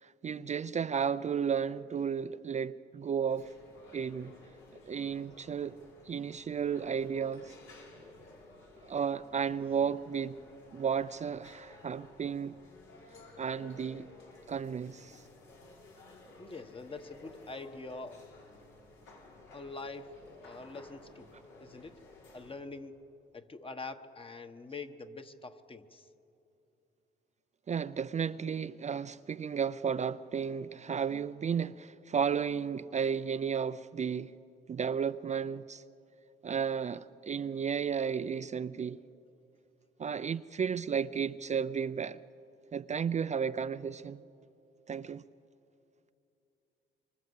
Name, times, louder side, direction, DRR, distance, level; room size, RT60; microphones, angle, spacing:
voice 1, 0.0-3.5 3.9-4.3 4.9-5.8 6.0-7.5 8.8-10.4 10.7-12.6 13.4-14.1 14.5-15.2 27.7-34.3 34.7-35.8 36.4-39.0 40.0-42.2 42.7-44.2 44.9-45.2, right 7 dB, 35° right, 0.5 m, -33 dB
sound 1, 3.3-22.6, left 2 dB, 85° left, 5.9 m, -55 dB
voice 2, 16.4-18.2 19.5-21.3 21.6-22.0 22.3-23.0 23.3-26.1, left 3 dB, 25° left, 1.3 m, -45 dB
25.5 x 24.5 x 8.0 m
cardioid pair, 90°, 20 cm